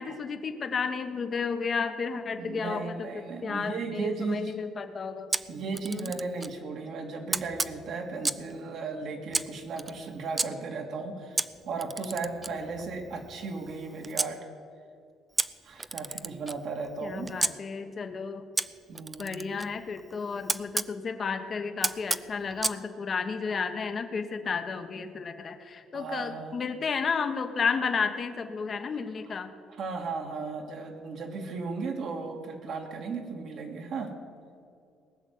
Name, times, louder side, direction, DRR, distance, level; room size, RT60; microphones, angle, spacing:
voice 1, 0.0-3.1 3.4-5.3 5.9-6.1 17.0-18.5 19.2-29.5, left 5 dB, 45° left, 7 dB, 1.2 m, -32 dB
voice 2, 2.4-4.5 5.5-14.5 15.6-17.3 18.9-19.3 25.9-26.5 29.8-34.1, right 4 dB, 60° right, 3 dB, 2.3 m, -35 dB
Camera, 5.3-6.6 7.3-8.5 9.3-10.5 11.4-14.3 15.4-17.5 18.6-20.9 21.8-22.8, right 3 dB, 25° right, 0.5 m, -33 dB
19.0 x 6.4 x 9.6 m, 2.4 s
supercardioid pair, 85°, 0 cm